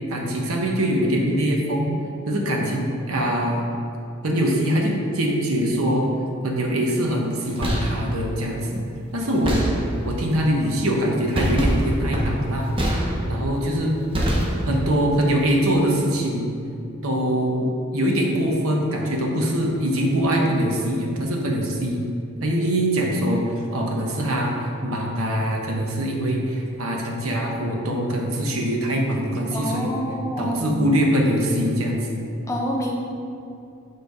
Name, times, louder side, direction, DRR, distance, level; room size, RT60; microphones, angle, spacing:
voice 1, 0.1-1.9 2.3-3.6 4.2-6.1 6.4-8.8 9.1-9.5 10.0-12.7 13.3-14.0 14.6-16.5 17.0-22.0 22.4-23.4 23.7-24.6 24.8-29.9 30.4-32.2, equal, 85° right, 0 dB, 1.0 m, -23 dB
sound 1, 7.4-8.1 9.4-10.2 11.3-13.5 14.1-14.9, equal, 25° right, 0.8 m, -24 dB
voice 2, 29.5-30.8 32.5-32.9, equal, 15° left, -2 dB, 0.7 m, -27 dB
6.7 x 3.3 x 5.3 m, 2.6 s
head